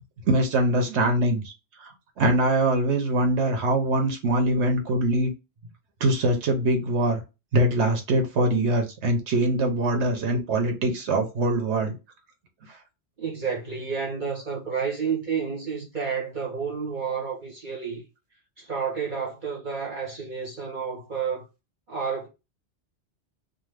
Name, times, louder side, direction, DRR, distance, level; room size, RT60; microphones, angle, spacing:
voice 1, 0.3-1.4 2.2-5.3 6.0-7.2 7.5-11.9, right 1 dB, 70° right, 1.0 m, -23 dB
voice 2, 13.2-18.0 18.6-21.4 21.9-22.3, right 6 dB, 45° right, 0.9 m, -30 dB
2.5 x 2.5 x 3.2 m
omnidirectional pair, 1.2 m